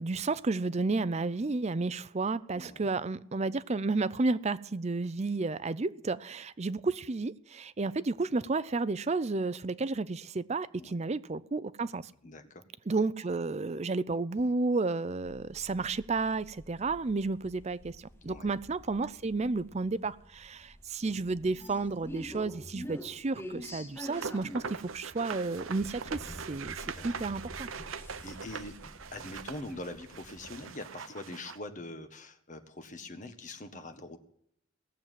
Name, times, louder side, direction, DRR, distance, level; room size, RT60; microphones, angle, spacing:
voice 1, 0.0-12.1 12.9-26.8 27.0-27.7, right 3 dB, 30° right, 15 dB, 0.5 m, -32 dB
voice 2, 2.5-2.9 10.7-11.0 12.2-12.6 18.2-18.6 24.5-24.8 26.8-27.1 28.2-28.8 29.1-34.2, left 1 dB, 40° left, 7 dB, 1.5 m, -44 dB
sound 1, 15.2-30.9, left 1 dB, 10° left, 0.9 m, -48 dB
sound 2, 24.0-31.6, right 6 dB, 80° right, 0.7 m, -42 dB
18.0 x 7.4 x 9.3 m, 0.71 s
head